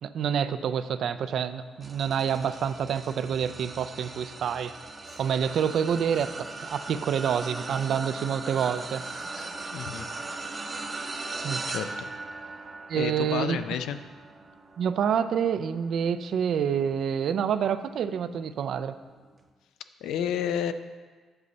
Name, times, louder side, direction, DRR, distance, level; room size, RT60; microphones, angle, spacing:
voice 1, 0.0-4.7 5.2-6.3 6.6-9.0 11.4-11.6 12.9-13.6 14.8-19.0, right 8 dB, 65° right, 12 dB, 0.4 m, -27 dB
sound 1, 1.8-17.3 17.8-18.1 19.3-19.4, right 3 dB, 30° right, 0.7 m, -39 dB
sound 2, 3.8-4.8 5.0-8.1 8.5-11.6 12.1-12.6, left 3 dB, 55° left, 1.4 m, -56 dB
voice 2, 9.7-10.1 11.7-11.9 12.9-14.0 20.0-20.7, left 9 dB, 85° left, 11 dB, 0.4 m, -30 dB
7.8 x 4.1 x 6.7 m, 1.4 s
cardioid pair, 90°, 0 cm